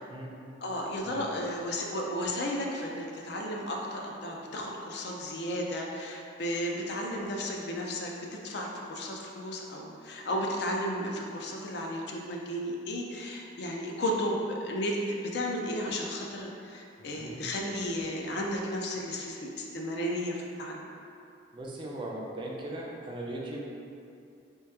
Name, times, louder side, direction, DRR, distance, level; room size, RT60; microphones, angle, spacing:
voice 1, 0.6-8.2 8.4-20.8, equal, 55° left, 0 dB, 0.4 m, -33 dB
voice 2, 17.0-17.5 21.5-23.6, right 1 dB, 25° right, -3 dB, 0.3 m, -39 dB
3.3 x 2.9 x 3.4 m, 2.6 s
head